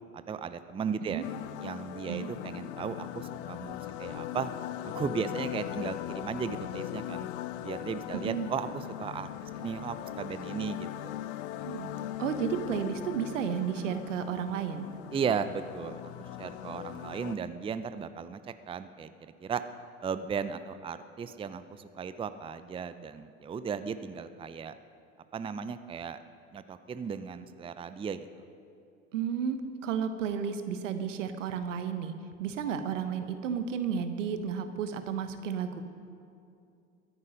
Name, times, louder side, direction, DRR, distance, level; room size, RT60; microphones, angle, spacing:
voice 1, 0.1-1.2 1.6-4.5 4.8-7.3 7.6-11.2 15.1-16.0 16.4-19.6 20.0-24.8 25.3-26.2 26.5-28.4, right 6 dB, 15° right, 12 dB, 0.5 m, -36 dB
sound 1, 1.2-17.4, left 12 dB, 55° left, 0.7 m, -39 dB
voice 2, 8.1-8.5 11.6-11.9 12.2-14.9 29.1-32.1 32.4-35.8, right 7 dB, 75° right, 9 dB, 1.2 m, -32 dB
22.5 x 9.6 x 5.3 m, 2.5 s
figure-of-eight pair, 75°, 38 cm